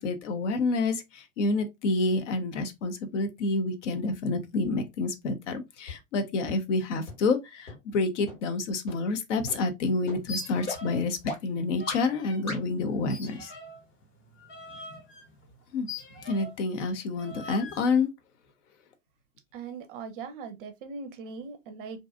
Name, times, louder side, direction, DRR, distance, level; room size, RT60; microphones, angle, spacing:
voice 1, 0.0-13.5 15.7-15.9 16.3-18.1, left 3 dB, 60° left, 0.6 m, -28 dB
sound 1, 5.9-6.0 6.5-6.6 7.1-7.2 7.7-7.8 8.3-8.4 8.9-9.0 9.5-9.6 10.1-10.2 10.7-10.8 11.3-11.4 11.9-12.0 12.5-12.6, left 2 dB, 80° left, 1.5 m, -35 dB
sound 2, 10.2-11.1 11.4-12.4 13.1-16.7 17.2-17.9, left 1 dB, 30° left, 0.8 m, -43 dB
voice 2, 19.5-22.0, right 5 dB, 45° right, 0.5 m, -40 dB
2.6 x 2.3 x 2.3 m
figure-of-eight pair, 85°, 40 cm